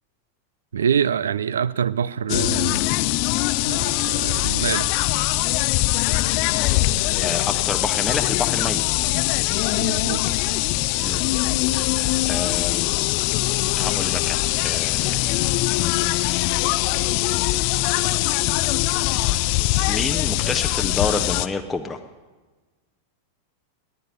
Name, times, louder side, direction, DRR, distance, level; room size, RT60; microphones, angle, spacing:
voice 1, 0.7-2.8 3.6-4.9 9.7-10.2, right 8 dB, 65° right, 0.4 m, -25 dB
sound 1, 2.3-21.5, left 18 dB, 45° left, 0.5 m, -22 dB
voice 2, 7.2-8.8 11.0-11.2 11.7-12.9 13.8-15.5 19.9-22.0, left 4 dB, 10° left, 0.8 m, -29 dB
18.0 x 10.5 x 6.6 m
figure-of-eight pair, 90°, 0 cm